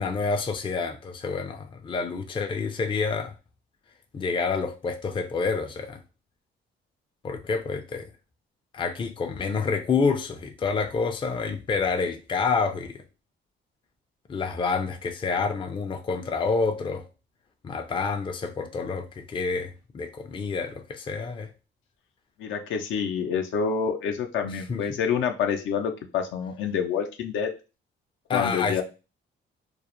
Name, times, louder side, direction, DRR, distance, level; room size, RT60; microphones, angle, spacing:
voice 1, 0.0-3.3 4.1-6.0 7.2-8.1 8.7-13.0 14.3-17.1 17.6-21.5 24.7-24.8 28.3-28.8, left 4 dB, 25° left, 0.4 m, -28 dB
voice 2, 22.4-27.5 28.3-28.8, left 7 dB, 75° left, 0.5 m, -27 dB
2.3 x 2.0 x 2.9 m
cardioid pair, 90°, 20 cm